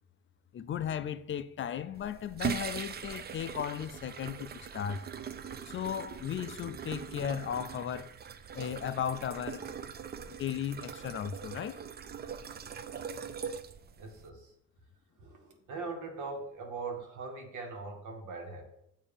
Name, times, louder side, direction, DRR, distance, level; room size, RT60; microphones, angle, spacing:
voice 1, 0.5-5.1 5.6-8.1 8.5-9.7 10.4-11.8, left 9 dB, 40° left, 0.4 m, -36 dB
sound 1, 1.9-14.3, right 7 dB, 35° right, 0.4 m, -41 dB
voice 2, 14.0-14.5 15.2-18.6, right 3 dB, 80° right, 1.2 m, -41 dB
7.1 x 2.7 x 5.0 m
cardioid pair, 90°, 30 cm